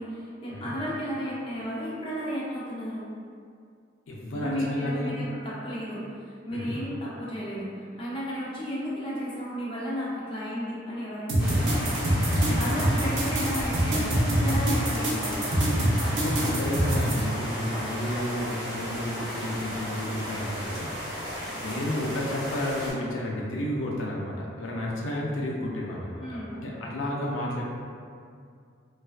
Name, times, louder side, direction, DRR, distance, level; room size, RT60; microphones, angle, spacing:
voice 1, 0.0-3.1 4.3-15.5 21.3-21.7 26.2-26.6, equal, 30° left, -7 dB, 0.5 m, -34 dB
voice 2, 4.1-5.1 6.5-6.7 11.3-11.5 12.5-12.8 16.0-20.9 21.4-27.6, left 1 dB, 90° left, -3 dB, 0.5 m, -32 dB
sound 1, 11.3-17.2, right 1 dB, 85° right, 0.5 m, -25 dB
sound 2, 11.4-22.9, equal, 10° right, 0.9 m, -34 dB
2.3 x 2.2 x 2.4 m, 2.3 s
head